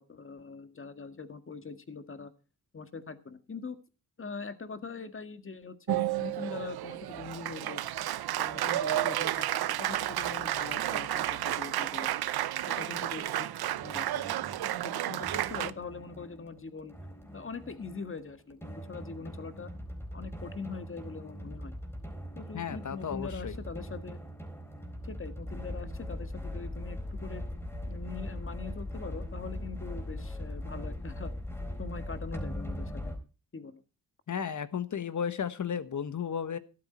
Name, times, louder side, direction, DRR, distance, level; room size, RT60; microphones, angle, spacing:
voice 1, 0.0-2.3 2.7-3.8 4.2-7.8 8.4-12.1 12.7-13.5 13.8-14.2 14.7-17.0 17.3-19.7 20.1-21.7 22.4-24.2 25.0-27.4 27.9-31.3 31.8-33.1 33.5-33.8, left 4 dB, 35° left, 10 dB, 1.8 m, -42 dB
Applause, 5.9-15.7, right 13 dB, 90° right, 0.7 m, -32 dB
sound 1, 13.7-33.2, left 1 dB, 5° left, 4.1 m, -40 dB
voice 2, 22.5-23.6 34.3-36.6, left 7 dB, 55° left, 13 dB, 1.4 m, -34 dB
13.5 x 12.0 x 4.4 m, 0.33 s
cardioid pair, 85°, 36 cm